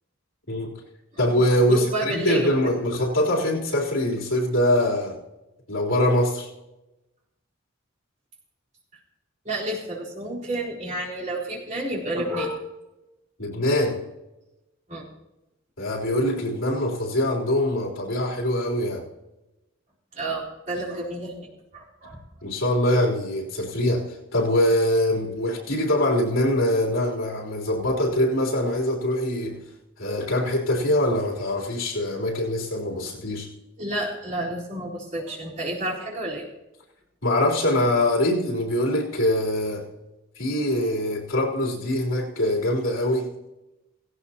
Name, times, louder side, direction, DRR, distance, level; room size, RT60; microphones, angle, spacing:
voice 1, 1.2-5.2 5.7-6.5 13.4-14.0 15.8-19.0 22.4-29.6 30.0-33.5 37.2-39.8 40.4-43.3, left 1 dB, 80° left, -2 dB, 3.7 m, -23 dB
voice 2, 1.7-2.5 9.4-12.7 14.9-15.0 20.1-22.2 33.8-36.4, right 1 dB, 40° right, -5 dB, 4.1 m, -30 dB
17.0 x 17.0 x 2.9 m, 0.96 s
head